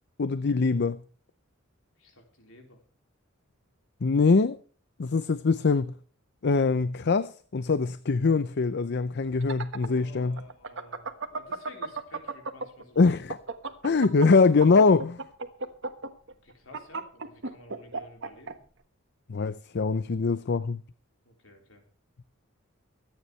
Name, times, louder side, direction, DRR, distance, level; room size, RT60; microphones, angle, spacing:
voice 1, 0.2-1.0 4.0-4.6 5.0-5.9 6.4-10.4 13.0-13.4 13.8-15.2 19.3-20.8, left 4 dB, 55° left, 0.6 m, -23 dB
voice 2, 2.0-2.8 9.9-13.1 16.4-18.6 21.2-21.8, left 1 dB, 70° left, 4.1 m, -52 dB
sound 1, 9.2-12.8 13.2-18.5, right 3 dB, 65° right, 1.4 m, -34 dB
24.0 x 9.7 x 3.2 m
head